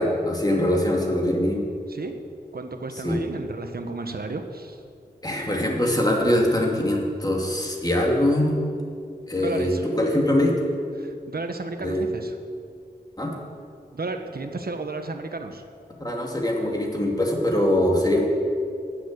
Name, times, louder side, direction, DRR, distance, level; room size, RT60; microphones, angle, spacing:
voice 1, 0.0-1.6 3.0-3.2 5.2-8.6 9.3-10.5 11.8-12.1 13.2-13.3 16.0-18.3, left 1 dB, 25° left, -1 dB, 2.6 m, -22 dB
voice 2, 2.5-4.8 9.4-9.9 11.0-12.4 13.9-15.6, right 3 dB, 65° right, 6 dB, 1.2 m, -33 dB
11.5 x 7.3 x 8.8 m, 2.3 s
wide cardioid pair, 60°, 17 cm